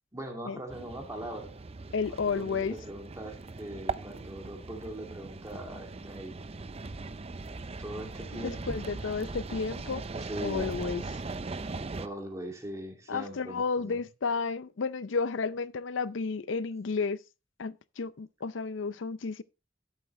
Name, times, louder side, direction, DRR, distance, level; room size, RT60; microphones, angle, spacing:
voice 1, 0.1-1.5 2.1-6.3 7.5-8.8 10.1-10.7 11.9-14.1, right 1 dB, 15° right, 2.3 m, -41 dB
sound 1, 0.7-12.1, right 3 dB, 35° right, 0.6 m, -40 dB
voice 2, 1.9-2.8 8.3-10.0 10.4-11.0 13.1-17.2 17.6-19.4, left 4 dB, 85° left, 0.5 m, -32 dB
13.0 x 7.6 x 3.1 m
head